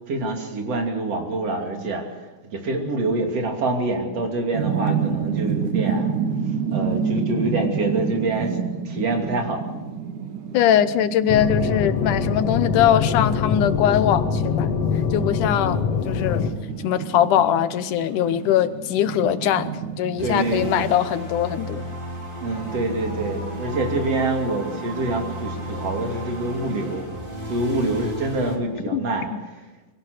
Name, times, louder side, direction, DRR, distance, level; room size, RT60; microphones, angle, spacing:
voice 1, 0.1-2.1 2.4-6.1 6.5-8.6 8.9-9.7 20.2-20.7 22.4-27.1 27.5-29.6, right 2 dB, 50° right, 2 dB, 3.7 m, -26 dB
sound 1, 4.5-21.0, right 6 dB, 70° right, 3.1 m, -29 dB
voice 2, 10.5-14.7 15.1-16.5 16.8-21.8 28.9-29.0 29.3-29.4, left 10 dB, 80° left, 12 dB, 2.4 m, -21 dB
sound 2, 11.3-16.5, left 6 dB, 60° left, 2.2 m, -23 dB
sound 3, 20.2-28.6, right 1 dB, 15° right, 2.9 m, -33 dB
24.0 x 17.0 x 6.6 m, 1.1 s
omnidirectional pair, 3.6 m